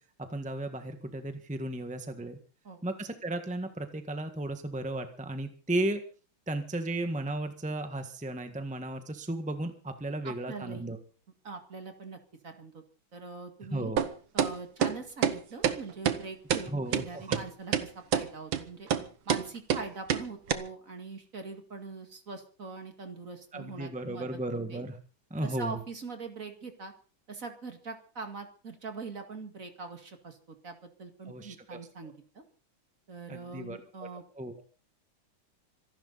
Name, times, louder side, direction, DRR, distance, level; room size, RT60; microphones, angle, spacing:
voice 1, 0.2-2.4 2.8-6.0 6.5-11.0 13.6-14.0 16.6-17.4 23.5-25.0 25.3-25.8 31.3-31.8 33.3-34.1 34.3-34.5, right 1 dB, 5° right, 7 dB, 1.4 m, -35 dB
voice 2, 10.2-10.8 11.4-12.8 13.1-13.9 14.3-18.9 19.3-24.8 25.4-26.9 27.3-32.4 33.1-34.2, right 4 dB, 45° right, 6 dB, 2.5 m, -42 dB
sound 1, 14.0-14.1 14.4-14.5 14.8-14.9 15.2-15.4 15.6-15.8 16.1-16.2 16.5-16.6 16.9-17.0 17.3-17.4 17.7-17.9 18.1-18.3 18.5-18.6 18.9-19.0 19.3-19.4 19.7-19.8 20.1-20.2 20.5-20.6, right 8 dB, 85° right, 2.0 m, -26 dB
26.0 x 11.5 x 4.1 m, 0.38 s
omnidirectional pair, 2.1 m